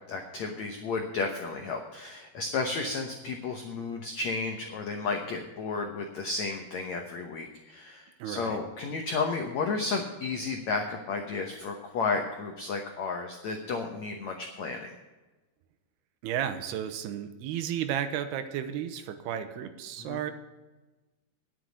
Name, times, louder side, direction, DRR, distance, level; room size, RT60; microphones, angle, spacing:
voice 1, 0.1-14.9 20.0-20.2, left 4 dB, 80° left, 4 dB, 1.6 m, -33 dB
voice 2, 8.2-8.6 16.2-20.3, right 9 dB, 80° right, 10 dB, 2.8 m, -33 dB
10.5 x 7.6 x 9.3 m, 1.1 s
omnidirectional pair, 4.8 m